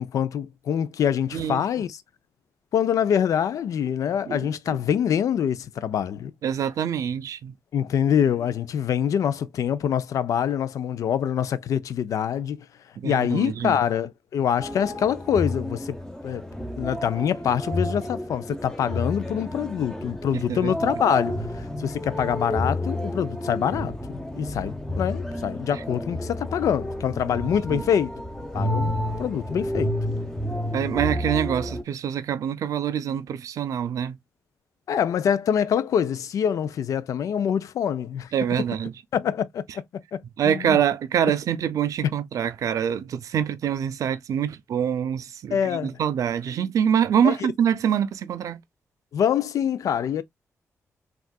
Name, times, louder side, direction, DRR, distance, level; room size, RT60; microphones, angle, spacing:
voice 1, 0.0-2.0 2.7-6.3 7.7-12.7 13.0-16.0 16.2-16.4 16.8-28.1 28.5-28.9 29.2-29.9 34.9-38.3 39.1-40.2 40.4-40.8 45.5-45.9 47.2-47.3 49.1-50.2, left 8 dB, 75° left, 0.4 m, -25 dB
voice 2, 1.3-1.6 4.3-4.8 6.4-7.5 13.0-13.8 20.3-20.9 25.7-25.8 27.7-27.8 30.7-34.2 38.3-38.9 40.4-48.6, right 8 dB, 75° right, 0.4 m, -25 dB
sound 1, 14.6-31.8, left 1 dB, 10° left, 0.8 m, -30 dB
3.6 x 2.3 x 2.2 m
cardioid pair, 80°, 6 cm